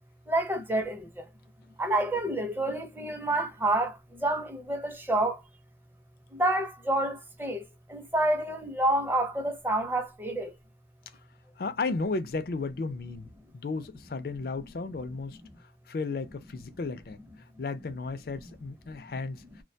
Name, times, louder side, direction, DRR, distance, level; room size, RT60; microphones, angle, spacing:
voice 1, 0.3-1.3 1.8-5.4 6.3-10.5, right 1 dB, 10° right, 0.6 m, -28 dB
voice 2, 11.6-13.3 13.5-19.4, left 3 dB, 55° left, 0.4 m, -34 dB
2.3 x 2.2 x 2.6 m
head